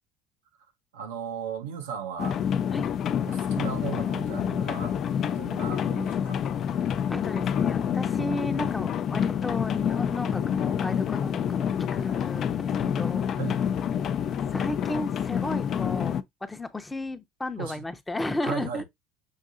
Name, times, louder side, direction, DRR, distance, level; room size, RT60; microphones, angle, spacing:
voice 1, 0.9-2.4 3.3-5.0 5.3-6.4 13.4-13.6 17.6-17.9 18.4-18.8, right 8 dB, 90° right, 0.7 m, -36 dB
sound 1, 2.2-16.2, left 8 dB, 50° left, 0.4 m, -28 dB
voice 2, 7.1-13.4 14.5-18.8, left 2 dB, 15° left, 0.7 m, -34 dB
6.4 x 2.7 x 2.4 m
hypercardioid pair, 75°, 0 cm